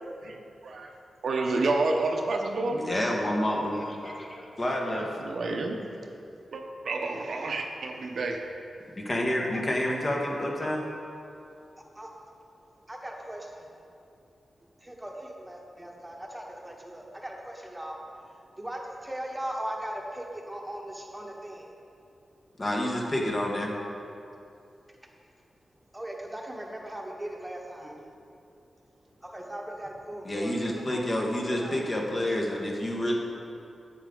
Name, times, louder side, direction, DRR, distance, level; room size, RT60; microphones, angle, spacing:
voice 1, 0.2-0.9 1.2-2.8 4.9-5.8 6.5-8.4, right 3 dB, 70° right, 2 dB, 0.7 m, -29 dB
voice 2, 2.7-5.1 9.0-10.9 22.6-23.8 30.3-33.1, left 1 dB, 35° left, -1 dB, 1.3 m, -29 dB
voice 3, 11.8-12.1 12.9-13.7 14.8-18.0 18.6-20.0 20.3-21.7 25.9-27.6 29.2-30.5 30.9-32.0, right 1 dB, 10° right, 0 dB, 1.1 m, -39 dB
7.9 x 7.4 x 3.8 m, 2.6 s
cardioid pair, 75°, 0 cm